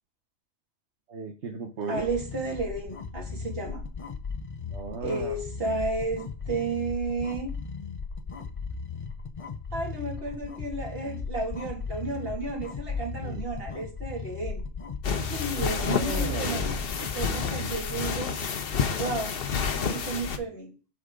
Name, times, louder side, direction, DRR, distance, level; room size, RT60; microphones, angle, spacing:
voice 1, 1.1-2.0 4.7-5.4 5.6-5.8 12.9-13.4 15.8-17.8, right 5 dB, 80° right, 3 dB, 1.2 m, -37 dB
sound 1, 1.8-18.2, left 5 dB, 35° left, 0.7 m, -36 dB
voice 2, 1.9-3.8 5.0-7.5 9.7-14.6 15.3-16.6 17.1-18.3 19.0-19.4 19.7-20.7, right 3 dB, 60° right, 0 dB, 2.6 m, -32 dB
sound 2, 15.0-20.4, left 6 dB, 60° left, 1.0 m, -30 dB
8.3 x 6.3 x 3.8 m, 0.36 s
omnidirectional pair, 1.2 m